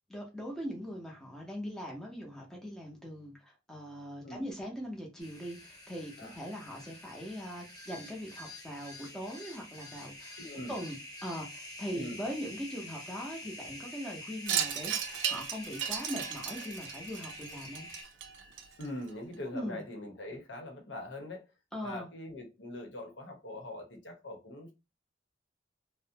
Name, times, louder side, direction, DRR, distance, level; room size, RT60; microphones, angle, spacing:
voice 1, 0.1-10.4 10.7-11.0 11.2-17.9 19.5-19.8 21.7-22.1, equal, 5° left, 0.6 m, -41 dB
sound 1, 5.2-18.0, left 1 dB, 25° left, 0.9 m, -47 dB
voice 2, 10.4-10.7 11.9-12.2 18.8-21.5 21.8-24.7, left 1 dB, 80° left, 0.9 m, -42 dB
Wind chime, 14.5-19.1, right 9 dB, 90° right, 0.4 m, -35 dB
2.5 x 2.0 x 2.7 m
head